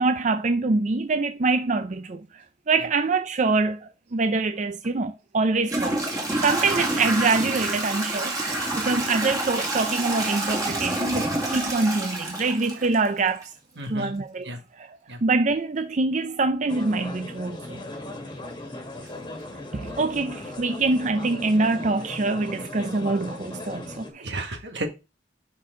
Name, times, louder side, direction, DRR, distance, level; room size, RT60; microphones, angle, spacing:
voice 1, 0.0-13.5 13.9-17.8 19.7-24.3, right 3 dB, 45° right, 0.5 m, -25 dB
Toilet flush / Trickle dribble, 4.8-4.9 5.6-13.4, right 2 dB, 20° right, 2.1 m, -28 dB
voice 2, 13.8-14.1 14.4-14.6 15.1-15.2 24.1-24.9, right 1 dB, 80° right, 1.7 m, -34 dB
sound 1, 16.7-24.1, left 2 dB, 25° left, 1.6 m, -38 dB
11.0 x 4.4 x 3.8 m
head